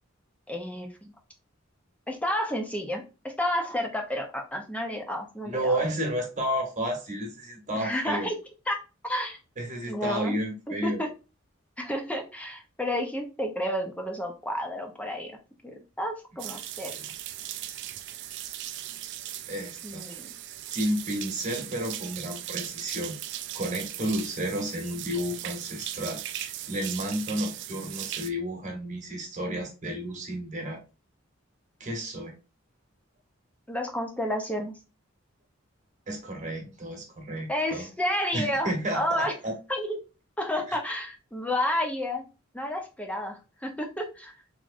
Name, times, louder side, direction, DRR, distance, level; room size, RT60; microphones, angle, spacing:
voice 1, 0.5-1.1 2.1-5.8 7.8-8.3 8.7-8.8 9.0-9.4 9.9-10.3 10.7-11.1 11.8-15.3 15.6-16.9 19.8-20.3 33.7-34.7 37.5-39.3 39.7-40.0 40.4-42.2 42.5-44.3, left 1 dB, 5° left, 3 dB, 0.7 m, -31 dB
voice 2, 5.4-8.3 9.6-11.0 16.9-17.1 19.5-20.1 20.7-23.2 23.5-30.8 31.8-32.4 36.1-37.9 38.3-39.5 40.7-40.8, equal, 40° right, 2 dB, 1.2 m, -32 dB
sound 1, 16.4-28.3, right 12 dB, 60° right, 0.3 m, -38 dB
3.6 x 3.1 x 2.5 m, 0.31 s
head